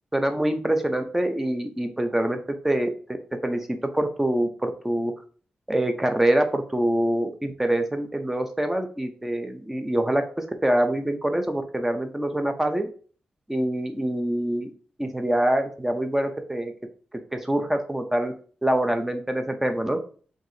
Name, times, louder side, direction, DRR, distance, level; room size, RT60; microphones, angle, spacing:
voice 1, 0.1-2.9 3.4-5.1 5.7-12.9 13.5-14.7 15.0-16.7 17.3-18.4 18.6-20.0, right 1 dB, 10° right, 6 dB, 0.6 m, -25 dB
4.6 x 3.7 x 2.7 m, 0.42 s
wide cardioid pair, 140°, 3 cm